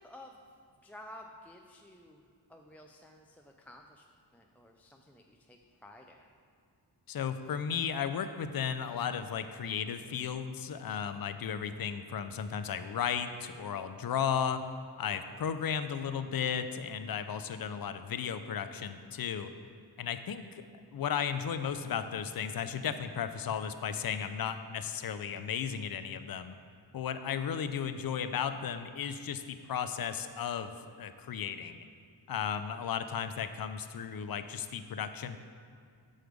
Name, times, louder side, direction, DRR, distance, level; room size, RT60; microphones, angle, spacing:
voice 1, 0.0-4.1 4.3-6.3, left 1 dB, 5° left, 1 dB, 0.3 m, -53 dB
voice 2, 7.1-14.6 15.0-19.5 20.0-20.7 20.9-26.5 26.9-31.8 32.3-35.4, left 7 dB, 60° left, 10 dB, 0.5 m, -35 dB
6.4 x 4.7 x 5.1 m, 2.2 s
wide cardioid pair, 75°, 41 cm